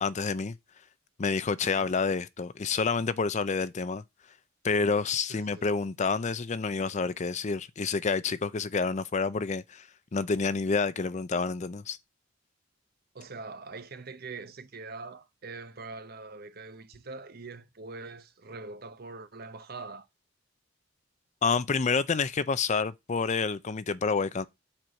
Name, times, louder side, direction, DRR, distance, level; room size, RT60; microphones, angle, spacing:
voice 1, 0.0-0.6 1.2-4.0 4.6-9.9 10.1-12.0 21.4-24.5, left 4 dB, 35° left, 0.5 m, -28 dB
voice 2, 5.3-5.7 13.1-20.1, right 3 dB, 50° right, 0.9 m, -43 dB
7.4 x 4.6 x 6.3 m
head